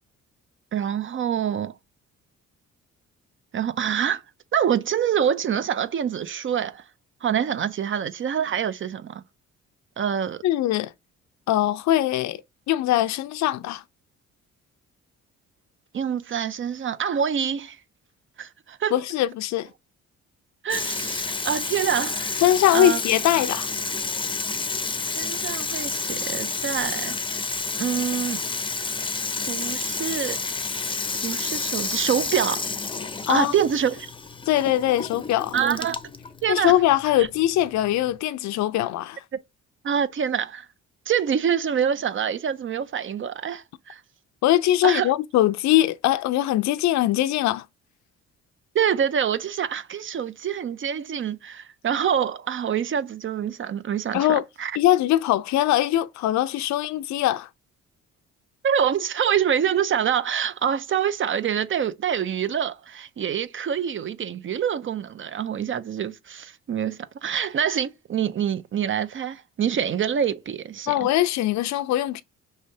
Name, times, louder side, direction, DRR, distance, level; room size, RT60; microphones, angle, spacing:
voice 1, 0.7-1.7 3.5-4.2 4.5-6.8 7.2-9.2 10.0-10.4 15.9-17.8 18.4-19.0 20.6-22.4 22.7-23.0 25.1-27.2 27.8-28.4 29.5-30.4 31.2-32.7 33.3-34.1 35.5-36.0 36.4-36.7 37.2-37.3 39.8-40.7 41.1-44.0 44.8-45.1 48.7-54.7 58.6-71.1, right 8 dB, 40° right, 0.5 m, -26 dB
voice 2, 10.4-10.9 11.5-12.4 12.7-13.8 18.9-19.7 22.4-23.7 33.3-33.5 34.5-35.6 36.5-39.2 44.4-47.6 54.1-54.4 54.8-57.5 70.9-72.2, left 13 dB, 65° left, 0.4 m, -21 dB
Water tap faucet / Sink (filling or washing), 20.7-38.2, left 4 dB, 15° left, 0.6 m, -30 dB
5.5 x 3.2 x 2.7 m
cardioid pair, 90°, 30 cm